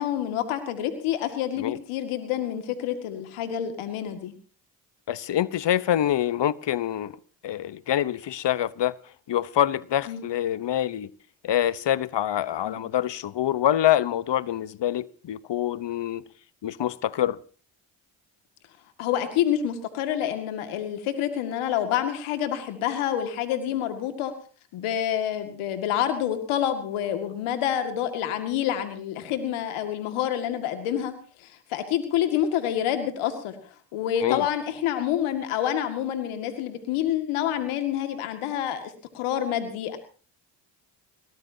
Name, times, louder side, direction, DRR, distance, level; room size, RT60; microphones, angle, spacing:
voice 1, 0.0-4.3 10.1-10.2 12.6-12.8 19.0-24.3 24.7-31.1 31.4-33.5 33.9-40.0, left 10 dB, 90° left, 2.2 m, -28 dB
voice 2, 5.1-7.2 7.4-8.9 9.3-11.1 11.4-16.3 16.6-17.4 34.2-34.5, left 11 dB, 60° left, 1.1 m, -25 dB
23.0 x 18.5 x 2.8 m
supercardioid pair, 55°, 48 cm